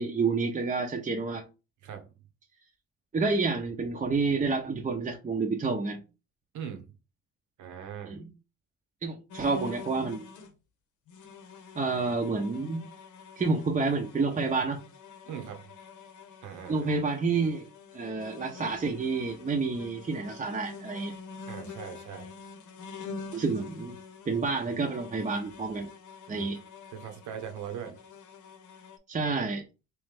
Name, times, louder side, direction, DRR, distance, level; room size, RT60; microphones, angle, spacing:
voice 1, 0.0-1.4 3.1-6.0 8.1-8.3 9.0-10.2 11.8-12.9 13.4-14.8 16.7-17.7 17.9-21.1 23.3-24.0 24.3-25.9 26.3-26.6 29.1-29.6, right 4 dB, 25° right, 0.6 m, -29 dB
voice 2, 1.8-2.1 6.5-6.9 7.6-8.2 15.2-15.6 16.4-16.9 21.5-22.3 26.3-26.5 26.9-28.0, right 8 dB, 75° right, 1.0 m, -40 dB
sound 1, 9.3-10.5 11.1-29.0, left 5 dB, 80° left, 0.8 m, -46 dB
3.2 x 3.1 x 3.4 m
cardioid pair, 90°, 30 cm